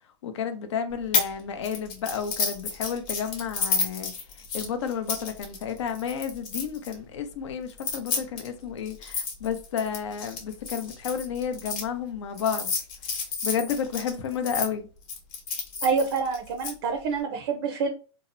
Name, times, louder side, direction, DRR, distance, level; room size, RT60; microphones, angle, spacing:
voice 1, 0.2-4.1 4.5-12.7 13.4-14.9, left 7 dB, 75° left, 0.5 m, -31 dB
sound 1, 1.1-1.3 1.6-6.9 7.7-11.8 12.4-14.7 15.1-16.7, left 5 dB, 40° left, 0.9 m, -30 dB
voice 2, 15.8-17.9, right 5 dB, 60° right, 0.5 m, -27 dB
2.7 x 2.0 x 2.5 m
hypercardioid pair, 140°, 15 cm